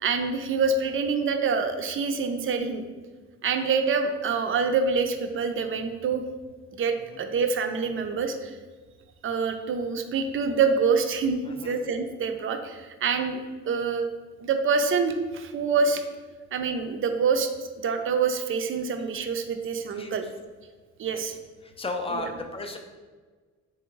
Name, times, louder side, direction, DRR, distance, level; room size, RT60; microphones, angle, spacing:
voice 1, 0.0-2.9 3.4-6.2 6.7-8.5 9.2-13.4 13.6-14.1 14.4-16.0 16.5-17.5 17.8-20.2 21.0-21.3, right 5 dB, 45° right, 6 dB, 0.4 m, -26 dB
voice 2, 11.4-11.8 19.9-20.2 21.1-21.3 21.6-22.8, left 2 dB, 20° left, 4 dB, 0.4 m, -35 dB
3.5 x 2.9 x 3.0 m, 1.4 s
cardioid pair, 90°, 30 cm